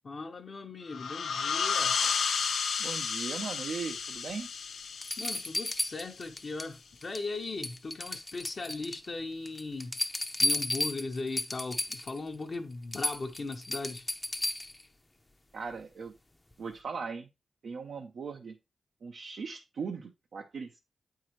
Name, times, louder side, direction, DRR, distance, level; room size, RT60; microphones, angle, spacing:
voice 1, 0.0-2.0 5.2-10.0 10.4-14.1, left 3 dB, 50° left, 0.9 m, -38 dB
sound 1, 0.9-6.3, left 6 dB, 80° left, 0.5 m, -32 dB
voice 2, 2.8-4.5 15.5-16.1 16.6-17.3 17.6-18.5 19.0-20.8, right 5 dB, 70° right, 0.7 m, -39 dB
sound 2, 4.3-4.4 5.0-6.7 7.0-7.4 7.6-9.1 9.5-12.2 12.5-12.6 12.9-14.8 16.5-16.6, left 2 dB, 25° left, 0.7 m, -33 dB
8.6 x 4.7 x 3.1 m
cardioid pair, 65°, 0 cm